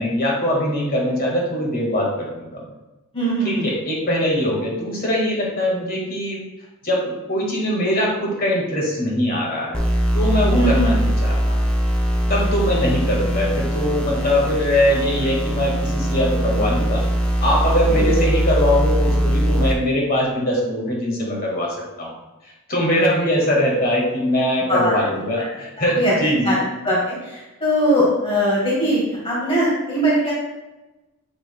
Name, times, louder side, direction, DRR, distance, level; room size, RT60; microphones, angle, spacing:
voice 1, 0.0-2.6 3.4-6.4 6.8-9.8 10.1-11.6 12.3-17.0 17.4-22.1 22.4-26.6, left 1 dB, 40° left, -3 dB, 1.8 m, -22 dB
voice 2, 3.1-3.7 10.5-10.8 12.3-12.7 17.9-18.1 24.7-24.9 25.8-26.6 26.8-30.3, equal, 25° left, -7 dB, 1.8 m, -21 dB
sound 1, 9.7-19.7, equal, 5° left, 0.7 m, -21 dB
7.9 x 5.8 x 2.2 m, 1.1 s
head